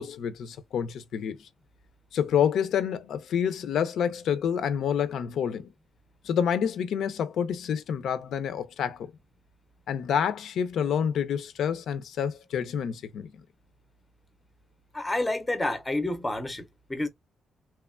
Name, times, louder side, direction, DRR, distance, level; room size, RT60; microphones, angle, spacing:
voice 1, 0.0-1.5 2.1-5.7 6.2-9.1 9.9-13.3, left 8 dB, 75° left, 0.4 m, -28 dB
voice 2, 14.9-17.1, left 2 dB, 10° left, 0.5 m, -29 dB
2.9 x 2.2 x 2.2 m
cardioid pair, 115°, 0 cm